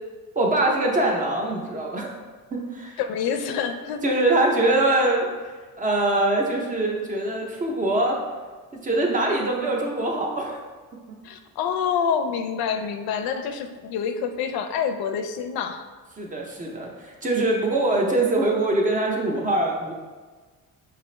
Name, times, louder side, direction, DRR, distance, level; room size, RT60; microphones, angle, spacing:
voice 1, 0.4-2.1 2.5-3.0 4.0-8.2 8.7-10.6 16.2-19.9, right 2 dB, 25° right, -1 dB, 0.5 m, -23 dB
voice 2, 3.0-4.2 11.2-15.8, left 7 dB, 85° left, 7 dB, 0.5 m, -27 dB
5.6 x 2.5 x 3.1 m, 1.4 s
cardioid pair, 170°, 36 cm